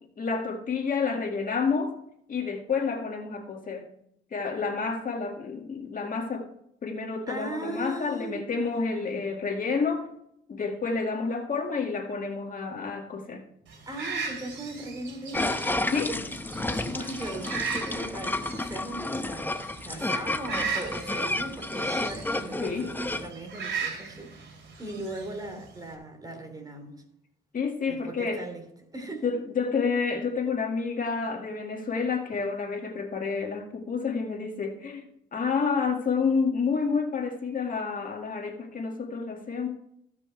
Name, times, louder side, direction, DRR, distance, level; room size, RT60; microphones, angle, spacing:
voice 1, 0.2-2.0 2.3-3.9 4.3-6.5 6.8-10.1 10.5-13.5 15.9-16.2 22.6-22.9 27.5-28.4 29.2-35.0 35.3-39.7, left 5 dB, 45° left, 1.8 m, -29 dB
voice 2, 7.3-9.3 13.9-19.6 19.8-24.4 24.8-27.0 27.9-28.7 28.9-29.3, right 1 dB, 20° right, 3.0 m, -39 dB
sound 1, 13.7-26.0, right 5 dB, 65° right, 2.9 m, -38 dB
sound 2, 15.3-23.3, left 2 dB, 10° left, 0.7 m, -31 dB
15.0 x 6.1 x 4.5 m
cardioid pair, 90°, 20 cm